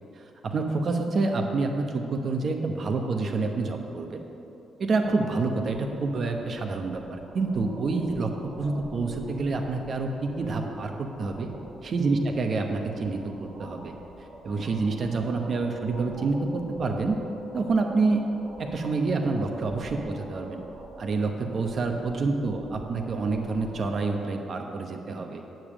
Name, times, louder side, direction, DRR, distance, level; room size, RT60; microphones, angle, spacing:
voice 1, 0.2-4.2 4.8-11.5 11.8-13.9 14.4-17.2 17.5-18.2 18.6-20.6 21.0-25.4, right 3 dB, 50° right, 3 dB, 1.0 m, -28 dB
sound 1, 5.0-24.1, equal, 25° right, 2.1 m, -45 dB
9.2 x 5.2 x 7.5 m, 2.9 s
cardioid pair, 90°, 0 cm